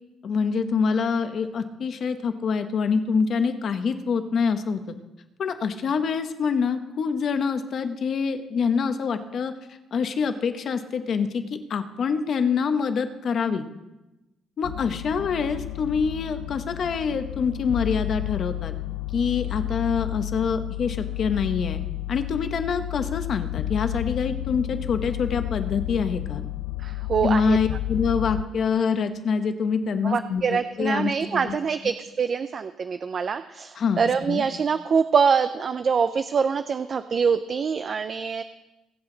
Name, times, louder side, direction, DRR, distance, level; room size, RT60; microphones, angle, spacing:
voice 1, 0.2-4.8 5.4-9.5 9.9-13.7 14.6-18.7 19.1-21.8 22.1-26.4 27.2-31.6 33.7-34.4, left 5 dB, 45° left, 8 dB, 1.0 m, -25 dB
sound 1, 14.6-28.4, left 18 dB, 80° left, 0.5 m, -31 dB
voice 2, 26.8-27.6 30.0-38.4, right 6 dB, 35° right, 10 dB, 0.4 m, -24 dB
22.5 x 8.0 x 3.9 m, 1.0 s
cardioid pair, 160°, 0 cm